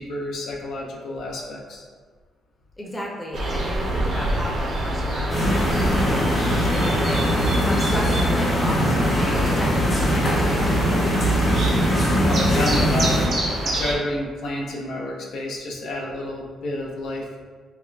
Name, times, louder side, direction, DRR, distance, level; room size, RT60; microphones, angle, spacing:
voice 1, 0.0-1.8 12.3-13.3 13.6-17.3, left 1 dB, 80° left, -2 dB, 0.4 m, -30 dB
voice 2, 2.8-10.9, equal, 15° left, -3 dB, 0.6 m, -33 dB
sound 1, 3.3-14.0, right 1 dB, 60° right, 0.5 m, -27 dB
sound 2, 5.3-13.3, equal, 45° left, 1.0 m, -21 dB
3.4 x 2.1 x 2.4 m, 1.5 s
cardioid pair, 90°, 0 cm